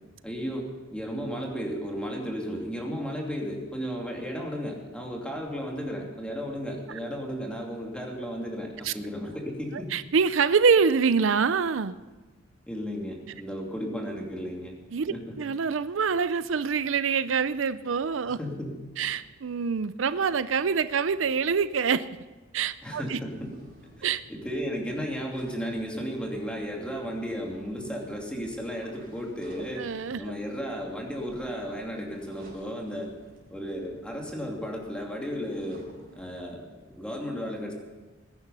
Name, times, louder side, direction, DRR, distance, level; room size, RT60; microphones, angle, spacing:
voice 1, 0.2-9.9 12.7-14.7 15.1-15.4 18.3-18.7 19.0-19.1 22.8-23.6 24.3-29.9 30.2-33.1 33.5-37.7, equal, 5° left, 0 dB, 2.6 m, -34 dB
voice 2, 9.9-12.0 14.9-18.4 19.0-22.1 22.5-23.2 24.0-24.2 29.8-30.2, right 5 dB, 80° right, 14 dB, 0.5 m, -25 dB
sound 1, 23.3-36.4, equal, 50° right, 5.0 m, -54 dB
20.0 x 10.5 x 5.6 m, 1.3 s
head